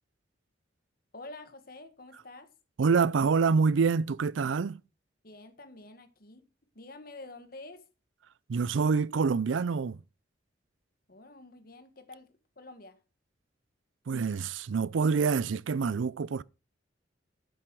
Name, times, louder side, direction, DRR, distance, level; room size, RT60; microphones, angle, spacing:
voice 1, 1.1-2.5 5.2-6.5 6.7-7.9 11.1-13.0, left 2 dB, 50° left, 1.6 m, -48 dB
voice 2, 2.8-4.8 8.5-10.0 14.1-16.4, right 5 dB, 85° right, 0.4 m, -26 dB
10.0 x 8.1 x 4.7 m
head